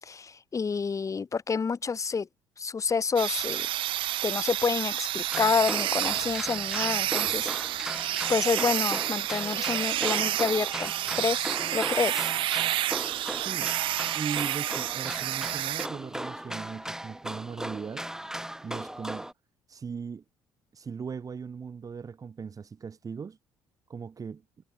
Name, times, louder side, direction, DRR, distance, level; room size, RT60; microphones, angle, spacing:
voice 1, 0.0-2.3 2.6-3.7 4.2-7.5 8.3-12.3, left 5 dB, 35° left, 3.1 m, -28 dB
sound 1, 3.2-15.9, right 14 dB, 60° right, 3.0 m, -30 dB
sound 2, 5.3-19.3, right 1 dB, 5° right, 7.8 m, -37 dB
voice 2, 13.4-13.7 14.1-18.1 18.6-19.3 19.7-20.2 20.7-23.4 23.9-24.4, right 6 dB, 35° right, 4.0 m, -38 dB
hypercardioid pair, 55°, 10 cm